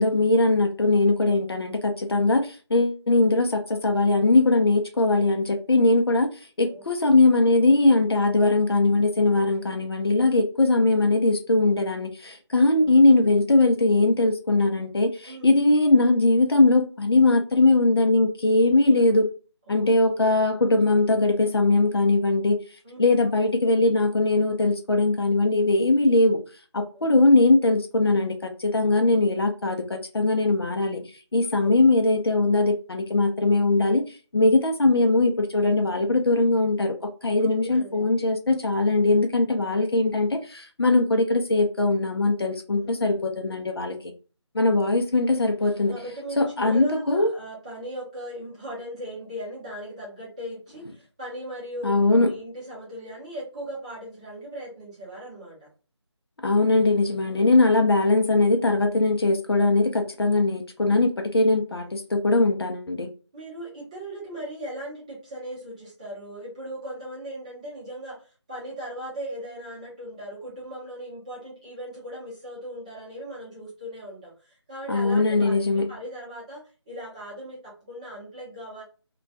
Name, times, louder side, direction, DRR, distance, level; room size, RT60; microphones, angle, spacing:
voice 1, 0.0-6.3 6.6-19.3 19.7-22.6 23.0-26.4 26.7-31.0 31.3-34.0 34.3-36.9 37.2-44.0 44.5-45.9 46.4-47.3 51.8-52.3 56.4-63.1 74.9-75.9, left 2 dB, 55° left, 0.5 m, -21 dB
voice 2, 6.7-7.3 9.2-9.7 12.6-12.9 15.3-15.6 19.7-20.5 22.8-23.2 26.9-27.1 27.3-27.5 31.4-31.8 37.4-38.1 42.7-43.3 45.9-55.7 57.3-57.6 61.3-61.5 61.7-61.9 63.3-78.8, equal, 15° right, 0.7 m, -39 dB
2.2 x 2.2 x 2.6 m
figure-of-eight pair, 160°, 15 cm